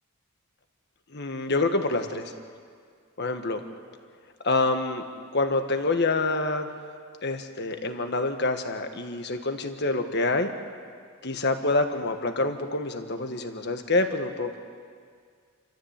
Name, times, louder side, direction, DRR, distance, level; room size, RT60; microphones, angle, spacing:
voice 1, 1.1-2.3 3.2-3.6 4.4-5.0 5.3-6.7 7.2-10.5 11.2-14.6, left 2 dB, 50° left, 6 dB, 1.6 m, -26 dB
29.5 x 14.0 x 8.2 m, 2.1 s
head